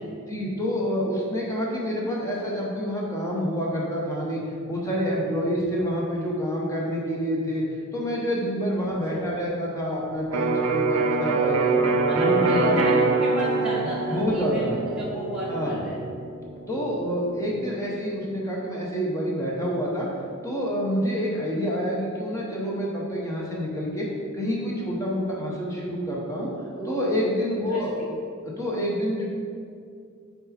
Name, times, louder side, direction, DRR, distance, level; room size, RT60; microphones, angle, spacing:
voice 1, 0.3-4.4 4.7-7.6 7.9-11.8 12.1-13.0 13.8-14.8 15.5-15.8 16.7-20.1 20.4-24.1 24.3-26.5 26.8-27.9 28.6-29.2, equal, 15° left, -4 dB, 1.0 m, -27 dB
Electric guitar, 10.3-18.1, right 3 dB, 80° right, 0.5 m, -25 dB
voice 2, 12.1-16.0 26.7-28.1, equal, 5° right, -8 dB, 1.0 m, -33 dB
6.5 x 4.1 x 4.3 m, 2.3 s
head